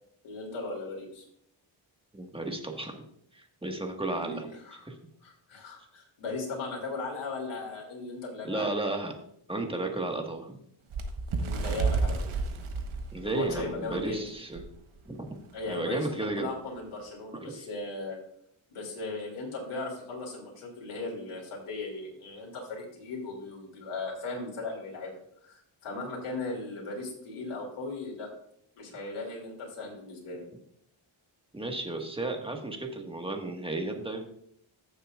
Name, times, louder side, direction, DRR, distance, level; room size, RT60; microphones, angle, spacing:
voice 1, 0.2-1.2 4.1-4.4 4.6-4.8 5.2-8.7 11.3-12.3 13.2-14.2 15.5-18.2 18.7-25.1 25.4-28.3 28.8-30.4, left 3 dB, 85° left, -1 dB, 2.8 m, -37 dB
voice 2, 2.1-3.0 3.3-4.5 4.8-5.0 8.4-9.1 9.5-10.6 13.1-14.6 15.1-15.3 15.7-16.5 17.3-17.7 31.5-34.2, right 2 dB, 10° right, 3 dB, 1.6 m, -33 dB
Bird, 10.9-14.1 14.6-14.7 15.0-15.3 16.0-16.1, right 4 dB, 75° right, 1.3 m, -31 dB
15.0 x 7.2 x 2.5 m, 0.69 s
cardioid pair, 90°, 50 cm